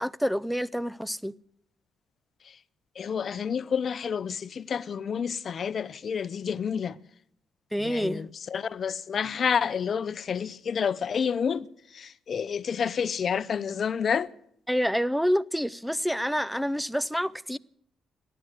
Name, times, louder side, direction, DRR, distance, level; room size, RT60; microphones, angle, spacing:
voice 1, 0.0-1.3 7.7-8.3 14.7-17.6, equal, ahead, 0.5 m, -27 dB
voice 2, 3.0-7.0 7.8-11.7 11.9-14.3, left 7 dB, 50° left, 0.7 m, -29 dB
15.0 x 12.0 x 7.9 m
cardioid pair, 90°, 0 cm